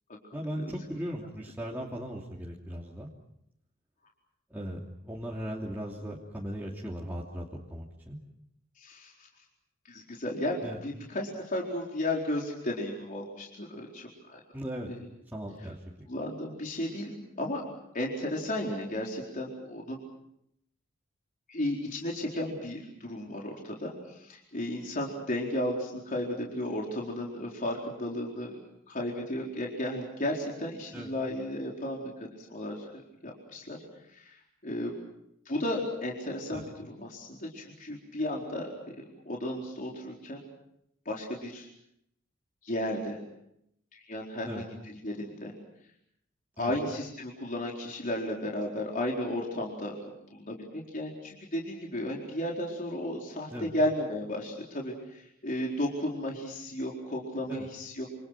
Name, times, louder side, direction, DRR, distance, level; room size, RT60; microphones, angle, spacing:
voice 1, 0.3-3.1 4.5-7.4 7.7-8.2 10.6-10.8 14.5-14.9 15.3-15.8 30.9-31.1 36.5-36.7 44.4-44.6 46.6-46.8 53.5-53.7 57.5-57.7, equal, 10° right, -4 dB, 2.9 m, -38 dB
voice 2, 8.8-9.1 9.9-10.6 10.8-14.4 14.9-15.0 16.1-17.6 17.9-20.0 21.5-28.6 28.9-32.0 32.4-32.9 33.2-33.8 34.1-34.3 34.6-34.9 35.5-36.6 37.0-38.7 39.3-40.4 41.1-41.7 42.6-43.2 43.9-45.5 46.6-50.0 50.3-58.1, left 1 dB, 40° left, -2 dB, 4.4 m, -34 dB
28.0 x 27.5 x 6.1 m, 0.78 s
head